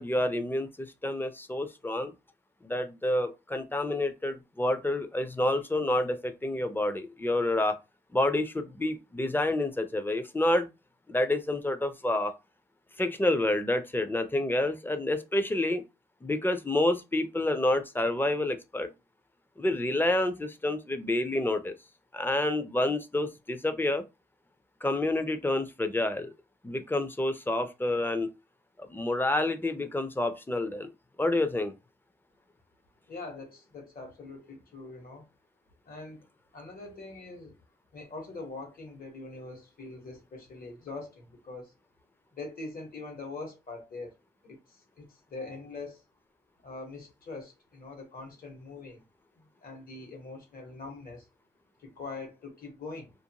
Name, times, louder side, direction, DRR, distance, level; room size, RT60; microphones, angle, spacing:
voice 1, 0.0-2.1 2.6-7.8 8.1-10.7 11.1-12.3 13.0-15.8 16.2-18.9 19.6-21.7 22.1-24.0 24.8-26.3 26.6-28.3 28.8-30.9 31.2-31.7, left 1 dB, 10° left, 0.4 m, -28 dB
voice 2, 33.1-35.3 35.8-36.2 36.5-37.6 37.9-41.7 42.3-44.1 44.4-46.0 46.6-49.0 49.3-51.3 51.8-53.1, left 3 dB, 60° left, 1.1 m, -43 dB
2.5 x 2.1 x 2.8 m
cardioid pair, 90°, 17 cm